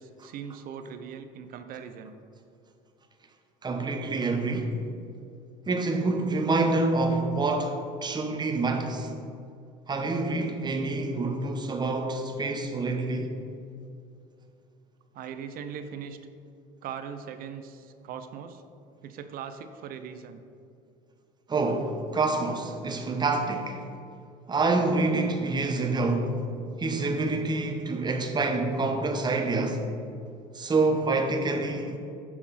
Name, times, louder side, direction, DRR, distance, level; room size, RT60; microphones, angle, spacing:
voice 1, 0.0-2.1 15.1-16.2 16.8-18.6 19.0-20.4, right 7 dB, 55° right, 0.6 m, -40 dB
voice 2, 3.6-4.8 5.7-9.1 9.9-13.3 21.5-23.8 24.5-26.4 26.8-29.8 30.5-32.0, right 3 dB, 25° right, 0.9 m, -27 dB
6.0 x 5.9 x 4.1 m
supercardioid pair, 85°, 17 cm